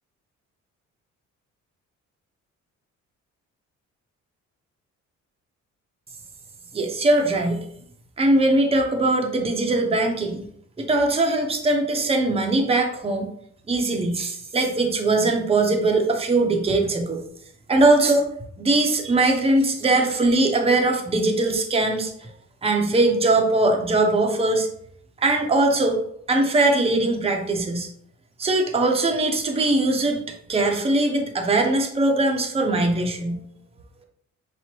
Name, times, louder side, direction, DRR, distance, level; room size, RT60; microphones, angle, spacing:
voice 1, 6.7-7.6 8.2-10.4 10.8-13.3 13.7-17.2 17.7-18.3 18.6-22.1 22.6-24.7 25.2-26.0 26.3-27.9 28.4-30.2 30.5-33.4, right 2 dB, 20° right, 3 dB, 0.7 m, -21 dB
5.8 x 2.1 x 3.0 m, 0.68 s
cardioid pair, 90°, 30 cm